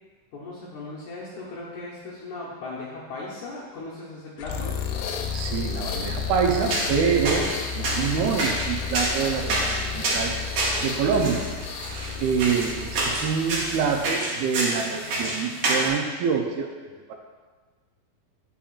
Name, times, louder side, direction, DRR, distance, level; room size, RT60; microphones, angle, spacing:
voice 1, 0.3-4.7, left 2 dB, 70° left, -7 dB, 1.9 m, -37 dB
sound 1, 4.4-14.4, left 7 dB, 90° left, 2.7 m, -32 dB
voice 2, 5.3-10.3 10.8-11.5 12.2-16.7 17.1-17.2, right 6 dB, 80° right, 2 dB, 2.4 m, -26 dB
sound 2, 6.4-15.9, right 2 dB, 60° right, 2.4 m, -29 dB
8.8 x 7.1 x 2.4 m, 1.4 s
omnidirectional pair, 4.5 m